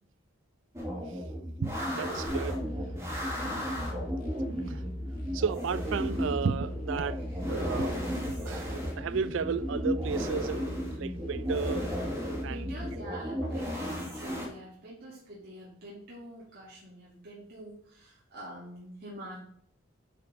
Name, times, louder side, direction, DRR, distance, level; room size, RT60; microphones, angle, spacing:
sound 1, 0.7-14.5, equal, 15° right, 1.9 m, -34 dB
voice 1, 1.6-2.6 3.4-3.7 4.5-4.8 5.3-11.9 12.4-12.7, right 6 dB, 65° right, 0.4 m, -34 dB
sound 2, 2.2-12.9, left 1 dB, 45° left, 2.2 m, -40 dB
voice 2, 7.0-7.4 12.4-19.4, equal, 50° right, 2.6 m, -45 dB
9.2 x 5.3 x 4.1 m
head